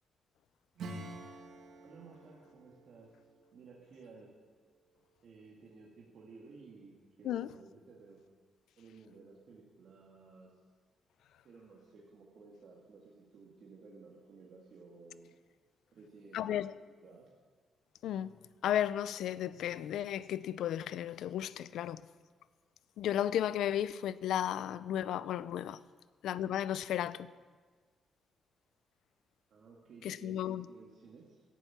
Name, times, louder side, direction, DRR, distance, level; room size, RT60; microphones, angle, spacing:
Acoustic guitar / Strum, 0.8-5.1, right 2 dB, 70° right, 2.2 m, -50 dB
voice 1, 1.8-3.1 3.5-4.3 5.2-8.2 8.8-10.6 11.4-15.3 15.9-16.6 17.0-17.3 29.5-31.4, right 4 dB, 55° right, 2.1 m, -55 dB
voice 2, 16.3-16.7 18.0-18.4 18.6-22.0 23.0-25.8 26.2-27.3 30.0-30.7, left 11 dB, 90° left, 0.5 m, -34 dB
17.0 x 11.0 x 5.9 m
cardioid pair, 145°, 0 cm